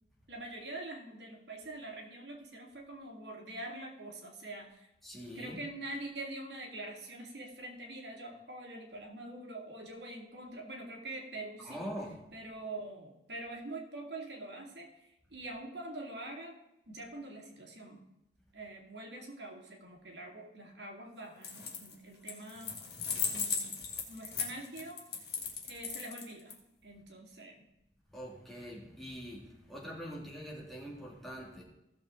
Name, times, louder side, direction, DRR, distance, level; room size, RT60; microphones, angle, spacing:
voice 1, 0.3-4.9 5.3-11.8 12.3-16.6 16.9-18.0 18.5-22.8 23.3-25.0 25.7-26.6 26.8-27.6, right 2 dB, 80° right, 1 dB, 2.3 m, -45 dB
voice 2, 5.0-5.6 11.6-12.2 28.1-31.6, equal, ahead, -4 dB, 2.0 m, -43 dB
sound 1, 21.4-21.9 22.3-26.5, left 6 dB, 65° left, 2.3 m, -36 dB
15.5 x 6.8 x 3.8 m, 0.89 s
head